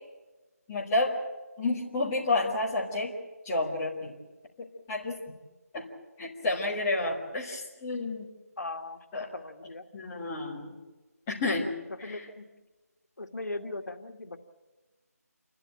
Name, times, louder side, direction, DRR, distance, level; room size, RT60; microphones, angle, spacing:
voice 1, 0.7-1.2 1.6-3.1 3.4-4.1 4.9-5.2 5.7-5.9 6.2-8.3 9.1-9.3 9.9-10.7 11.3-11.7 12.1-12.2, left 2 dB, 10° left, -6 dB, 1.7 m, -30 dB
voice 2, 8.6-9.0 9.3-9.8 11.9-12.5 13.2-14.4, left 2 dB, 75° left, 6 dB, 2.0 m, -38 dB
28.0 x 13.0 x 9.1 m, 1.2 s
figure-of-eight pair, 175°, 9 cm